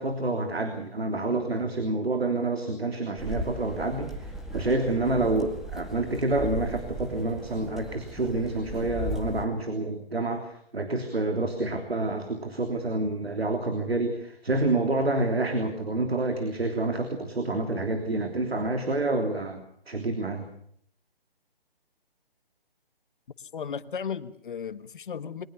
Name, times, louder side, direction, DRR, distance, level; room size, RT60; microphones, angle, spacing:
voice 1, 0.0-20.5, right 2 dB, 90° right, 5 dB, 3.4 m, -28 dB
sound 1, 3.2-9.4, equal, ahead, 2.0 m, -37 dB
voice 2, 23.5-25.5, left 7 dB, 55° left, 13 dB, 1.4 m, -35 dB
22.5 x 19.5 x 6.9 m, 0.66 s
figure-of-eight pair, 150°, 30 cm